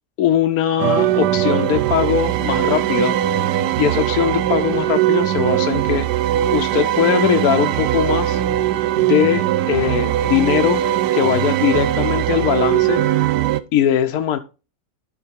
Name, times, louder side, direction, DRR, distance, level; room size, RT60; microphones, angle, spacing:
voice 1, 0.2-3.2 3.8-6.1 6.5-8.4 9.0-10.8 11.1-13.0 13.7-14.4, left 10 dB, 70° left, 6 dB, 1.0 m, -20 dB
sound 1, 0.8-13.6, right 12 dB, 90° right, 1.2 m, -20 dB
12.0 x 4.3 x 4.5 m, 0.32 s
omnidirectional pair, 1.7 m